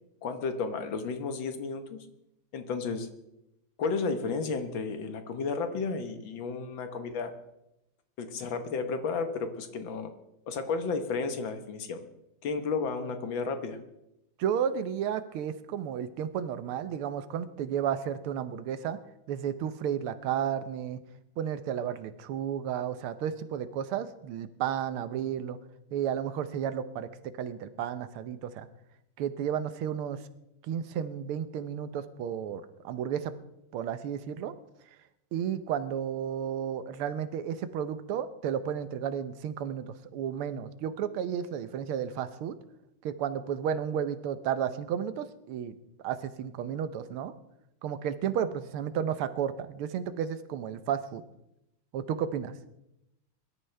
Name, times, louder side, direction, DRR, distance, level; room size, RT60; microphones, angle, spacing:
voice 1, 0.2-2.0 2.5-3.1 3.8-7.3 8.2-10.1 10.5-12.0 12.4-13.8, left 4 dB, 65° left, 8 dB, 1.9 m, -32 dB
voice 2, 14.4-19.0 19.3-21.0 21.4-25.6 25.9-27.1 27.4-28.7 29.2-30.2 30.7-33.3 33.7-34.5 35.3-39.9 40.1-42.6 43.0-45.8 46.0-47.3 47.8-51.2 51.9-52.5, right 9 dB, 85° right, 12 dB, 1.7 m, -32 dB
22.5 x 12.5 x 3.3 m, 0.87 s
omnidirectional pair, 2.3 m